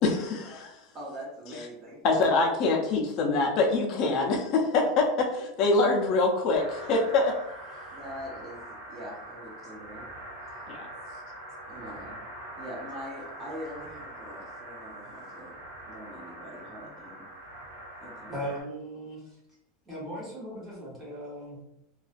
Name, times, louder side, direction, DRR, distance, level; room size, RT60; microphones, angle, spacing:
voice 1, 0.0-0.8 2.0-7.4 10.7-10.8, left 3 dB, 40° left, 0 dB, 0.4 m, -25 dB
voice 2, 0.9-2.0 5.8-6.0 7.9-10.1 11.7-12.3 12.6-15.5 15.8-17.2 18.0-18.5, equal, 30° right, -2 dB, 0.5 m, -43 dB
sound 1, 6.5-18.6, right 1 dB, 70° right, 1.0 m, -43 dB
voice 3, 18.3-19.4 19.8-21.6, equal, 15° right, -7 dB, 0.9 m, -38 dB
2.3 x 2.2 x 2.4 m, 0.84 s
supercardioid pair, 160°, 0 cm